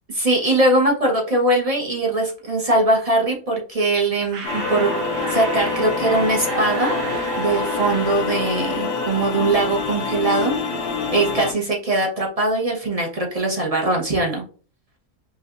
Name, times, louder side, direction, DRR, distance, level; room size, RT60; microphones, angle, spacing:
voice 1, 0.2-4.9 5.3-6.9 7.4-10.5 11.1-14.4, right 2 dB, 40° right, -1 dB, 0.5 m, -21 dB
sound 1, 4.3-9.8, right 5 dB, 60° right, 0.9 m, -33 dB
sound 2, 4.4-11.5, left 4 dB, 85° left, 1.3 m, -27 dB
Wind instrument woodwind instrument, 4.6-9.1, left 4 dB, 55° left, 0.5 m, -30 dB
5.5 x 2.3 x 2.4 m, 0.40 s
omnidirectional pair, 1.7 m